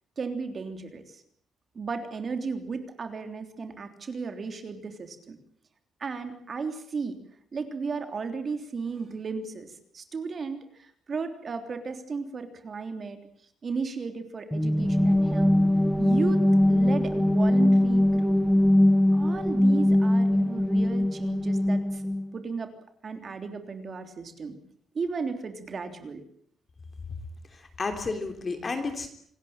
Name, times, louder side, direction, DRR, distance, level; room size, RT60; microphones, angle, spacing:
voice 1, 0.2-1.2 1.7-5.4 6.0-7.2 7.5-13.2 13.6-15.6 16.0-16.4 16.7-18.5 19.1-22.0 22.3-22.7 23.0-24.6 24.9-26.2, right 4 dB, 35° right, 7 dB, 3.3 m, -34 dB
sound 1, 14.5-22.3, left 1 dB, ahead, 1.2 m, -22 dB
voice 2, 27.5-29.1, left 3 dB, 25° left, 5 dB, 3.4 m, -32 dB
27.5 x 19.0 x 8.8 m, 0.64 s
cardioid pair, 165°, 0 cm